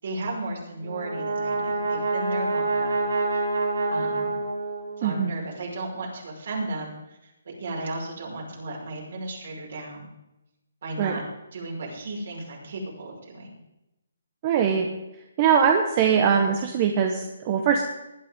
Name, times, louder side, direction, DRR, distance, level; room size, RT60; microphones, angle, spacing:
voice 1, 0.0-3.0 3.3-3.4 3.9-4.4 5.0-7.2 7.5-10.1 10.8-11.2 11.5-13.5, right 2 dB, 60° right, -2 dB, 5.7 m, -34 dB
Brass instrument, 0.8-5.2, right 3 dB, 90° right, 2.9 m, -27 dB
voice 2, 14.4-14.9 15.4-17.8, right 7 dB, 35° right, 4 dB, 1.2 m, -21 dB
20.0 x 10.5 x 3.7 m, 0.93 s
figure-of-eight pair, 145°, 0 cm